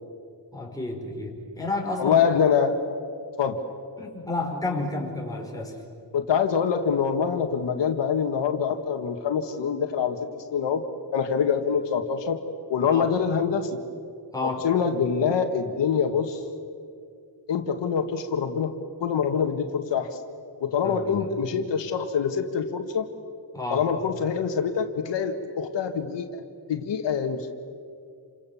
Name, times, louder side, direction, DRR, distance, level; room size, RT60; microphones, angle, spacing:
voice 1, 0.5-2.2 4.0-5.7 12.9-13.1 14.3-14.7 20.8-21.3 23.5-23.9, left 2 dB, 10° left, -1 dB, 5.1 m, -31 dB
voice 2, 2.0-2.8 3.4-3.6 6.1-10.8 11.1-12.4 12.7-13.8 14.4-16.4 17.5-18.7 19.0-20.2 20.6-23.1 23.7-26.4 26.7-27.4, left 6 dB, 85° left, 6 dB, 1.8 m, -25 dB
29.5 x 26.0 x 7.2 m, 2.3 s
wide cardioid pair, 115°, 42 cm